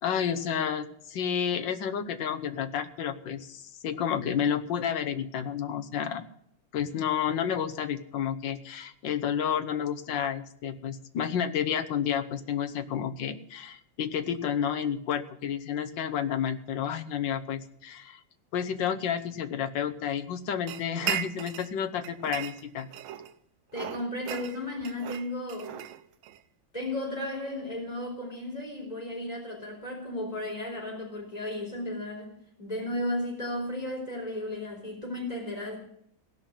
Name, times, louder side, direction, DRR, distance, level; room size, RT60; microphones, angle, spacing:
voice 1, 0.0-6.2 6.7-18.2 18.5-22.9, left 8 dB, 70° left, 8 dB, 1.6 m, -30 dB
sound 1, 20.7-21.7 22.0-23.3 23.7-26.4, right 11 dB, 85° right, 1.6 m, -36 dB
voice 2, 23.7-25.7 26.7-32.3 32.6-35.8, left 1 dB, 20° left, -1 dB, 4.3 m, -34 dB
17.0 x 5.8 x 10.0 m, 0.70 s
omnidirectional pair, 2.2 m